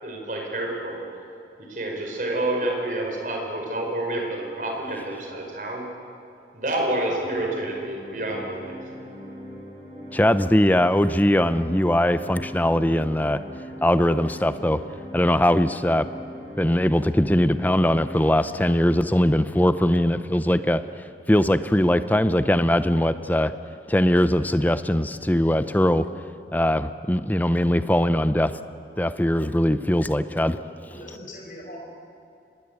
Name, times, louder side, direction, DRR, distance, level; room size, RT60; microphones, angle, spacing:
voice 1, 0.0-1.0 1.7-5.8 6.5-8.7, right 1 dB, 50° right, 0 dB, 5.1 m, -28 dB
sound 1, 7.1-19.1, equal, 30° right, 5.7 m, -41 dB
voice 2, 10.1-13.4 13.8-14.8 15.1-16.1 16.6-20.8 21.3-23.5 23.9-26.0 26.5-28.5 29.0-30.6, left 1 dB, 10° left, 12 dB, 0.7 m, -21 dB
voice 3, 30.5-31.8, left 1 dB, 45° left, -1 dB, 5.3 m, -42 dB
25.5 x 20.5 x 8.3 m, 2.7 s
head